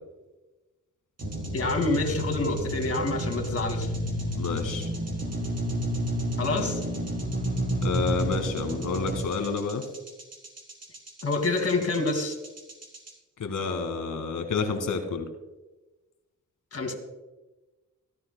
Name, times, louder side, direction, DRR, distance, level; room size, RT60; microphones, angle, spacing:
sound 1, 1.2-13.1, equal, 55° right, 4.1 m, -31 dB
voice 1, 1.5-3.9 6.4-6.8 11.2-12.3 16.7-16.9, left 3 dB, 50° left, 4 dB, 2.4 m, -27 dB
voice 2, 4.3-4.9 7.8-9.8 13.4-15.2, left 4 dB, 75° left, 5 dB, 1.9 m, -29 dB
18.5 x 13.0 x 2.2 m, 1.1 s
cardioid pair, 70°, 31 cm